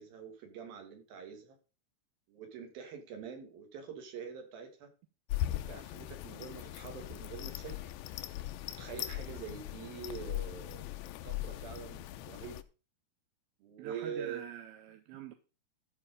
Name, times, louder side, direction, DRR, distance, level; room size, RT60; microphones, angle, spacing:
voice 1, 0.0-1.6 2.3-4.9 5.4-7.8 8.6-10.8 11.2-12.6 13.6-14.5, right 7 dB, 60° right, 3.4 m, -45 dB
sound 1, 5.3-12.6, left 14 dB, 80° left, 2.2 m, -39 dB
voice 2, 13.8-15.3, right 10 dB, 75° right, 2.3 m, -46 dB
13.5 x 5.0 x 5.1 m
omnidirectional pair, 5.0 m